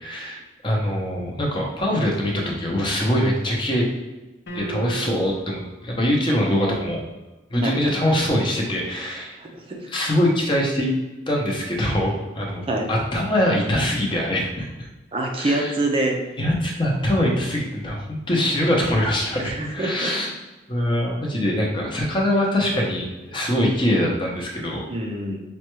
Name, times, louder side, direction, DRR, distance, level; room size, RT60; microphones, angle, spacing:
voice 1, 0.0-3.9 4.5-7.0 7.5-9.4 9.9-10.9 11.3-14.9 15.3-15.7 16.4-20.3 20.7-24.8, left 1 dB, 25° left, -1 dB, 0.7 m, -23 dB
sound 1, 4.5-5.5, right 5 dB, 80° left, 0.7 m, -34 dB
voice 2, 7.6-7.9 9.4-9.9 12.7-12.9 15.1-16.2 19.4-20.3 24.9-25.4, right 2 dB, 30° right, 1 dB, 0.4 m, -26 dB
5.3 x 2.2 x 3.0 m, 1.1 s
head